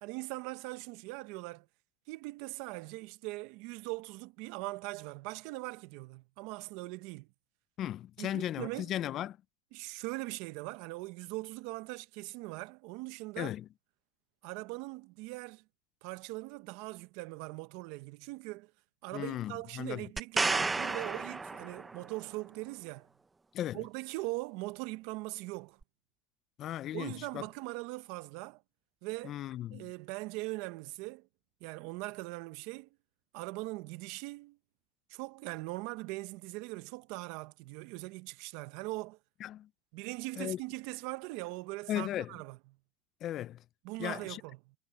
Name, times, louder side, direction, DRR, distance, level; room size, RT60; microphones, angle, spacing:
voice 1, 0.0-1.7 2.1-7.3 8.2-8.9 9.7-13.5 14.4-15.6 16.0-18.7 19.0-23.1 23.7-25.8 26.9-28.6 29.0-29.4 29.7-31.3 31.6-32.9 33.3-34.6 35.1-39.2 39.9-42.6 43.8-44.7, right 22 dB, 60° right, 0.9 m, -41 dB
voice 2, 7.8-9.4 13.4-13.7 19.1-20.0 23.5-23.8 26.6-27.4 29.2-29.9 39.4-39.7 40.4-40.6 41.9-42.3 43.2-43.6 44.0-44.4, left 12 dB, 40° left, 0.5 m, -36 dB
sound 1, 20.2-22.1 25.8-25.9, right 3 dB, 10° right, 0.6 m, -32 dB
supercardioid pair, 140°, 0 cm